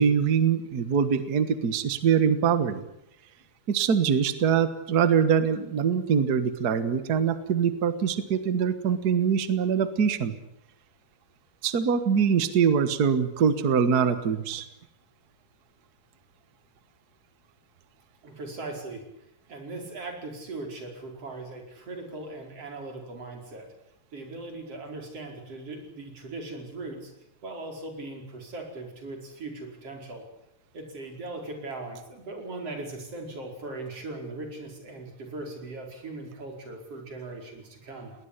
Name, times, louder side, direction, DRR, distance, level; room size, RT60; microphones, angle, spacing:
voice 1, 0.0-2.8 3.7-10.3 11.6-14.7, right 7 dB, 65° right, 11 dB, 0.9 m, -23 dB
voice 2, 18.2-19.0 19.5-23.7 24.1-27.1 27.4-30.3 30.7-38.2, right 2 dB, 40° right, 3 dB, 5.7 m, -39 dB
21.0 x 19.5 x 10.0 m, 0.80 s
omnidirectional pair, 4.0 m